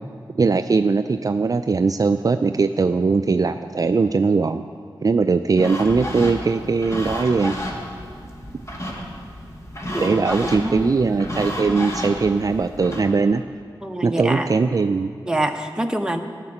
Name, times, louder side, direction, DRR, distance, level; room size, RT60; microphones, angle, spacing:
voice 1, 0.4-4.6 5.0-7.5 10.0-13.4 14.0-15.1, right 4 dB, 45° right, 9 dB, 0.4 m, -20 dB
sound 1, 5.6-13.0, left 1 dB, 35° left, 2.2 m, -31 dB
voice 2, 9.9-10.2 10.6-10.9 13.8-14.5 15.3-16.2, right 1 dB, 10° right, 5 dB, 1.0 m, -25 dB
12.5 x 6.6 x 8.6 m, 2.3 s
cardioid pair, 50°, 8 cm